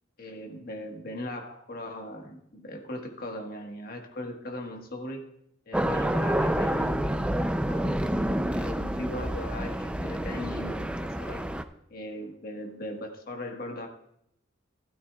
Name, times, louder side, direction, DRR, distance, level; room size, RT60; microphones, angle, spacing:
voice 1, 0.2-5.2 5.7-8.0 8.5-11.5 11.9-13.9, left 1 dB, 50° left, 2 dB, 1.5 m, -39 dB
sound 1, 5.7-11.6, right 1 dB, 5° right, 0.4 m, -28 dB
14.5 x 12.5 x 2.4 m, 0.74 s
head